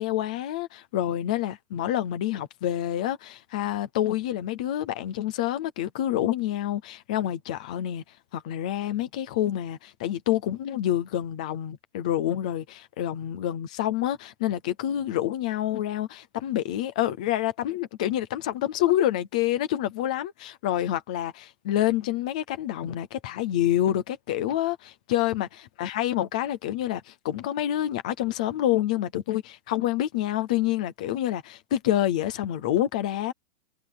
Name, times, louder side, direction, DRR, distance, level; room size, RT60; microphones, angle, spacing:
voice 1, 0.0-8.0 8.3-33.3, left 12 dB, 5° left, 0.3 m, -27 dB
hypercardioid pair, 160°, 38 cm